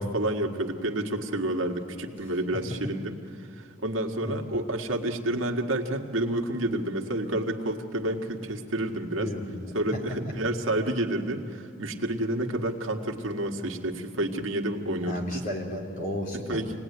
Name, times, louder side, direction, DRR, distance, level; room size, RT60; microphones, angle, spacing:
voice 1, 0.0-9.3 9.7-15.5 16.3-16.8, right 1 dB, 80° right, 3 dB, 1.8 m, -29 dB
voice 2, 9.2-9.7 15.1-16.6, left 1 dB, 45° left, -1 dB, 4.1 m, -33 dB
27.0 x 19.0 x 9.6 m, 2.8 s
head